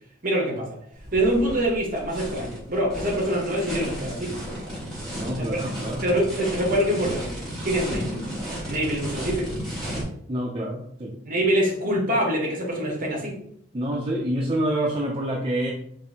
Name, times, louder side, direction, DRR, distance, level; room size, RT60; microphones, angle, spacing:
voice 1, 0.2-0.8 1.1-4.4 5.4-5.7 6.0-8.2 8.6-9.6 11.3-13.4, right 1 dB, 40° right, 0 dB, 1.0 m, -25 dB
sound 1, 0.9-10.0, equal, ahead, 1.6 m, -33 dB
voice 2, 5.1-6.1 10.3-11.2 13.7-15.7, right 1 dB, 25° right, -2 dB, 0.4 m, -27 dB
5.2 x 2.5 x 2.8 m, 0.70 s
head